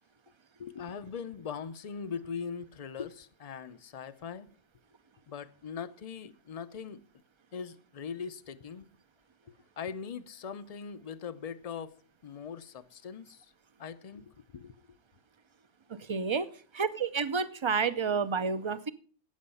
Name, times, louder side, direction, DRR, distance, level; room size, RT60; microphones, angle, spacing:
voice 1, 0.6-4.5 5.3-7.0 7.5-8.9 9.8-12.0 12.2-13.5 13.8-14.7, left 6 dB, 40° left, 0.6 m, -41 dB
voice 2, 15.9-18.9, right 5 dB, 30° right, 0.6 m, -30 dB
12.5 x 8.6 x 5.5 m
omnidirectional pair, 1.1 m